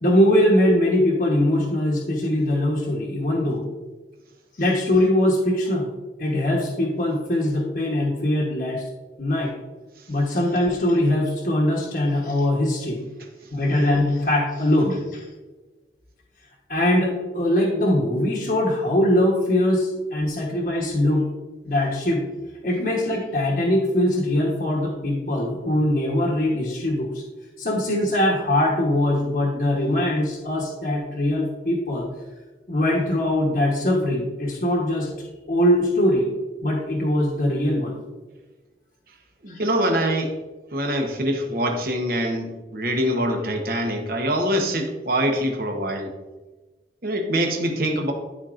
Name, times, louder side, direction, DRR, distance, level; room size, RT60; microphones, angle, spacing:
voice 1, 0.0-3.7 4.6-5.9 6.2-8.8 9.2-9.5 10.1-13.0 13.5-15.2 16.7-21.2 21.6-22.2 22.6-27.2 27.6-32.1 32.7-36.3 36.6-37.9 39.5-39.6, left 1 dB, 50° left, -4 dB, 1.1 m, -22 dB
voice 2, 39.4-40.4 40.7-46.1 47.0-48.1, equal, 50° right, 3 dB, 1.1 m, -24 dB
12.5 x 4.3 x 2.5 m, 1.2 s
head